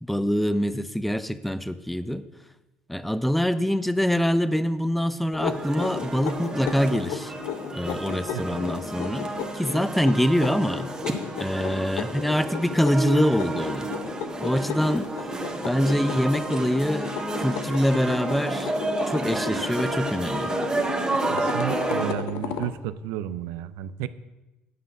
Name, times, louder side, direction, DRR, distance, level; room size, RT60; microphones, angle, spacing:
voice 1, 0.0-2.3 2.9-7.3 7.7-9.3 9.5-10.9 11.4-13.9 14.4-15.1 15.6-18.7 19.1-20.5, equal, ahead, 13 dB, 0.6 m, -25 dB
sound 1, 5.3-22.8, left 9 dB, 75° left, 0.9 m, -35 dB
sound 2, 5.4-22.1, right 2 dB, 15° right, 1.4 m, -31 dB
voice 2, 21.3-24.1, right 11 dB, 80° right, 14 dB, 0.5 m, -32 dB
9.8 x 5.6 x 7.3 m, 1.1 s
supercardioid pair, 85°, 5 cm